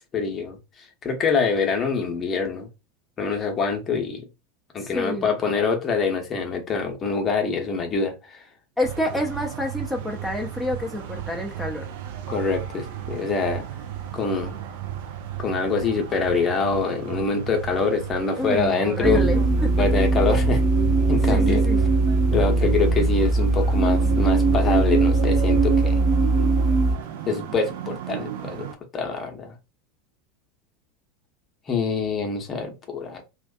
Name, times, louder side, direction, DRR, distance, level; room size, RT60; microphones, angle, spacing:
voice 1, 0.1-0.6 1.0-2.7 3.2-4.3 4.7-8.4 12.3-13.6 14.1-14.6 15.4-19.3 19.8-20.6 21.1-21.6 22.3-26.0 27.3-28.7 28.9-29.5 31.7-33.2, left 4 dB, 30° left, 0.8 m, -25 dB
voice 2, 4.8-5.3 8.8-11.9 18.4-19.7 21.3-21.9, left 1 dB, ahead, 0.5 m, -28 dB
sound 1, 8.8-28.7, right 11 dB, 60° right, 0.4 m, -34 dB
sound 2, 19.0-27.0, right 3 dB, 35° right, 0.9 m, -20 dB
2.4 x 2.3 x 2.3 m
figure-of-eight pair, 85°, 0 cm